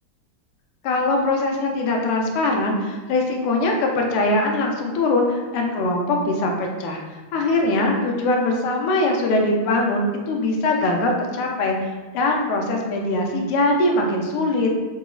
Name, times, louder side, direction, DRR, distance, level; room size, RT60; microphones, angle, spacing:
voice 1, 0.8-7.0 7.3-14.7, left 2 dB, 90° left, 1 dB, 1.5 m, -22 dB
3.9 x 2.9 x 2.3 m, 1.3 s
omnidirectional pair, 2.4 m